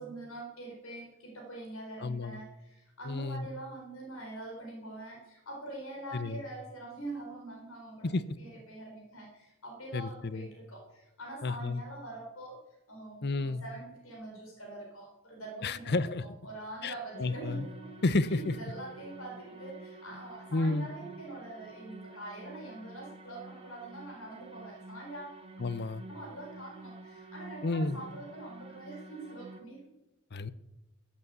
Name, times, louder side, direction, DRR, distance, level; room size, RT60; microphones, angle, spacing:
voice 1, 0.0-12.6 12.9-17.9 18.3-25.4 26.1-29.8, right 2 dB, 75° left, 0 dB, 4.4 m, -44 dB
voice 2, 2.0-2.4 3.0-3.5 6.1-6.4 8.0-8.2 9.9-10.5 11.4-11.8 13.2-13.6 15.6-16.2 16.8-17.7 18.0-18.6 20.5-20.9 25.6-26.0 27.6-28.0 30.3-30.5, left 2 dB, 50° left, 15 dB, 0.7 m, -31 dB
sound 1, 17.1-29.6, right 2 dB, 30° right, 1.7 m, -49 dB
14.5 x 8.4 x 8.1 m, 0.95 s
head